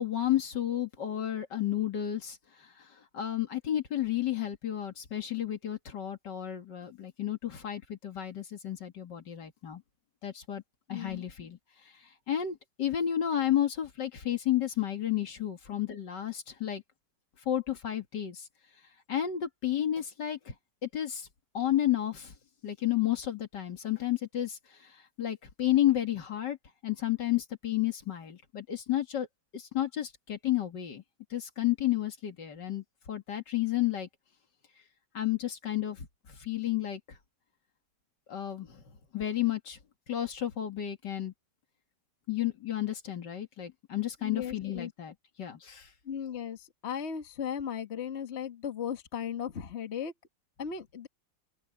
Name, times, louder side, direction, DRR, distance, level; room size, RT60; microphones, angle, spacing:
voice 1, 0.0-2.4 3.1-9.8 10.2-10.6 10.9-11.6 12.3-16.8 17.5-18.4 19.1-20.5 20.8-21.3 21.5-22.3 22.6-24.6 25.2-26.6 26.8-29.3 29.5-31.0 31.3-34.1 35.1-36.1 36.4-37.0 38.3-38.8 39.1-39.8 40.1-41.3 42.3-45.9, left 12 dB, 70° left, 2.5 m, -31 dB
voice 2, 10.9-11.3 44.2-44.9 46.0-50.1 50.6-51.1, left 8 dB, 40° left, 1.6 m, -36 dB
open air
omnidirectional pair, 2.0 m